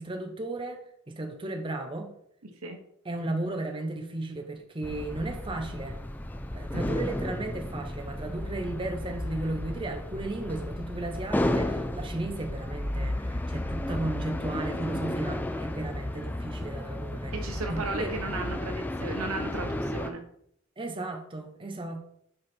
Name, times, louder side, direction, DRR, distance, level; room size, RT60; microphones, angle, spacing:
voice 1, 0.0-2.1 3.0-6.0 6.5-17.3 17.7-18.1 20.8-22.0, right 2 dB, 25° right, 4 dB, 0.7 m, -35 dB
voice 2, 2.4-2.8 6.7-6.9 17.3-20.2, right 3 dB, 85° right, 5 dB, 1.1 m, -35 dB
sound 1, 4.8-20.1, left 1 dB, 10° left, 0.3 m, -33 dB
6.5 x 4.2 x 4.4 m, 0.71 s
head